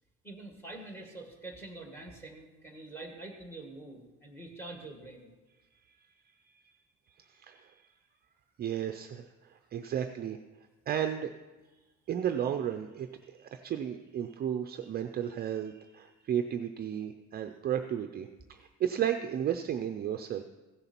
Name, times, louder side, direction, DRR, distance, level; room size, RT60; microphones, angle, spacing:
voice 1, 0.2-5.3, right 2 dB, 10° left, 2 dB, 1.6 m, -45 dB
voice 2, 7.3-7.8 8.6-10.4 10.9-11.3 12.1-20.4, right 9 dB, 35° right, 7 dB, 0.4 m, -33 dB
16.0 x 6.9 x 4.3 m, 1.2 s
cardioid pair, 175°, 30 cm